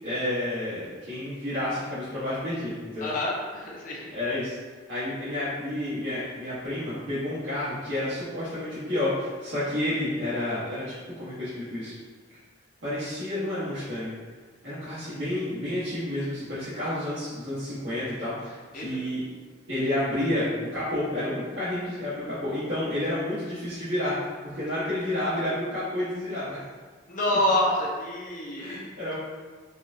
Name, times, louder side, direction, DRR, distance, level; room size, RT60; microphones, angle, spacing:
voice 1, 0.0-3.1 4.1-4.6 4.9-11.9 12.8-14.1 14.6-19.2 19.7-26.6 28.6-29.2, left 1 dB, 90° right, -15 dB, 1.3 m, -30 dB
voice 2, 3.0-4.1 18.7-18.9 27.1-29.2, left 1 dB, 45° left, -3 dB, 0.7 m, -27 dB
4.2 x 2.4 x 2.7 m, 1.4 s
head